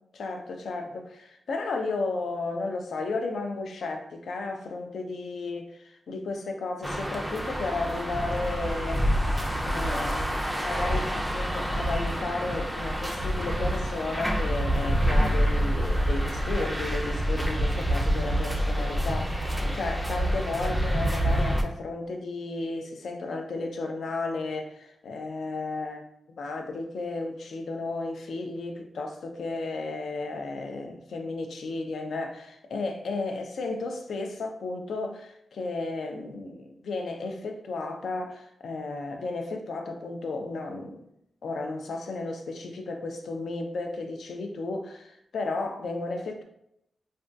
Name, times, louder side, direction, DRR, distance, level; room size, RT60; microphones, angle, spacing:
voice 1, 0.1-9.1 9.6-26.0 26.4-41.1 41.4-46.4, left 3 dB, 70° left, 4 dB, 0.4 m, -33 dB
sound 1, 6.8-21.6, equal, 5° right, 0.4 m, -27 dB
3.3 x 2.2 x 2.6 m, 0.76 s
wide cardioid pair, 125°, 0 cm